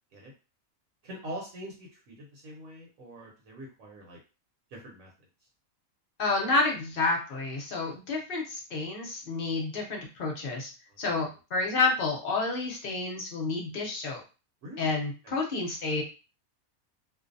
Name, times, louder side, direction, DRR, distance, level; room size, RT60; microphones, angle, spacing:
voice 1, 1.0-4.2 4.7-5.1 10.9-11.0 14.6-14.9 15.2-15.4, right 1 dB, 70° right, -1 dB, 1.1 m, -43 dB
voice 2, 6.2-10.7 11.0-14.2 14.8-16.0, left 3 dB, 50° left, 0 dB, 0.7 m, -29 dB
2.5 x 2.1 x 2.5 m, 0.32 s
omnidirectional pair, 1.5 m